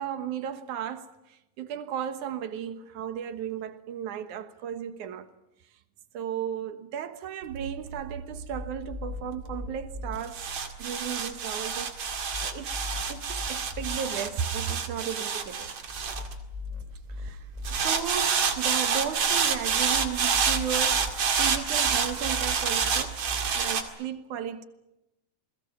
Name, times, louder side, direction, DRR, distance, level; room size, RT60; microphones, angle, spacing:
voice 1, 0.0-5.3 6.1-12.7 13.1-15.7 17.1-17.4 17.7-23.2 23.5-24.6, right 9 dB, 70° right, 2.6 m, -35 dB
sound 1, 7.5-17.0 17.6-23.8, right 6 dB, 50° right, 2.9 m, -28 dB
sound 2, 8.2-10.2 12.1-14.0 15.9-17.8 19.7-23.5, left 1 dB, 10° left, 3.2 m, -39 dB
29.0 x 21.0 x 7.2 m
omnidirectional pair, 3.8 m